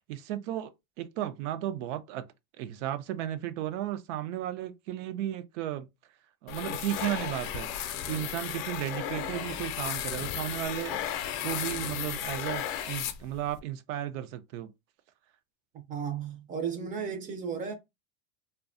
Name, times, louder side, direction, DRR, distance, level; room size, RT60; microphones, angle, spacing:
voice 1, 0.1-0.7 1.0-2.2 2.6-5.9 6.4-7.7 8.1-11.0 11.4-14.7, right 12 dB, 75° right, 0.5 m, -34 dB
sound 1, 6.5-13.6, left 10 dB, 50° left, 0.5 m, -34 dB
voice 2, 15.9-17.8, right 6 dB, 25° right, 0.4 m, -34 dB
2.6 x 2.2 x 2.4 m
supercardioid pair, 140°, 37 cm